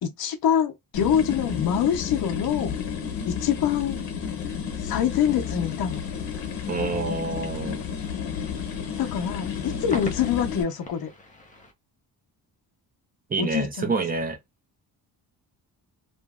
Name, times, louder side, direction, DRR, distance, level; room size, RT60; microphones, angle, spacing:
voice 1, 0.0-2.8 3.3-4.0 4.8-6.0 9.0-11.1 13.4-13.9, left 8 dB, 60° left, 0.8 m, -25 dB
sound 1, 0.9-10.6, left 7 dB, 85° left, 1.0 m, -31 dB
sound 2, 5.1-11.7, left 2 dB, 20° left, 0.7 m, -45 dB
voice 2, 6.7-7.8 13.3-14.4, right 3 dB, 20° right, 0.6 m, -27 dB
2.9 x 2.6 x 2.3 m
cardioid pair, 150°, 41 cm